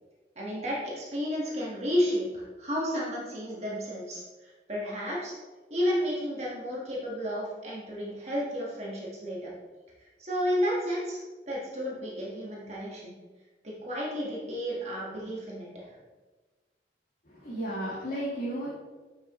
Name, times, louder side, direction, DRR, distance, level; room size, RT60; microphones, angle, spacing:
voice 1, 0.4-4.2 4.7-5.3 5.7-9.5 10.2-11.2 11.5-13.1 13.6-15.9, equal, 40° right, -5 dB, 1.5 m, -32 dB
voice 2, 17.2-18.7, right 1 dB, 50° left, -8 dB, 1.7 m, -33 dB
8.4 x 5.9 x 3.1 m, 1.3 s
head